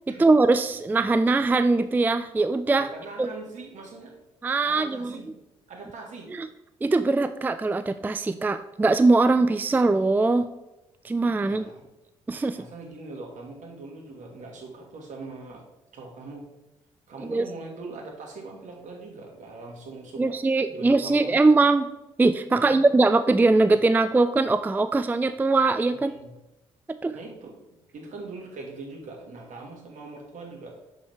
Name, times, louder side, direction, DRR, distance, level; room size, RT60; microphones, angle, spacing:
voice 1, 0.2-2.9 3.2-3.3 4.4-5.1 6.3-6.5 6.8-10.5 11.0-11.6 12.3-12.6 17.3-17.5 20.2-21.9 22.2-26.1 27.0-27.1, right 3 dB, 15° right, 11 dB, 0.3 m, -21 dB
voice 2, 2.8-4.1 4.7-5.3 5.7-6.3 11.4-11.8 12.5-15.6 15.9-16.5 17.1-20.3 20.7-21.4 22.5-22.9 26.1-26.3 27.1-27.5 27.9-30.8, right 3 dB, 60° right, 1 dB, 1.8 m, -41 dB
6.3 x 5.5 x 3.2 m, 0.95 s
hypercardioid pair, 45°, 14 cm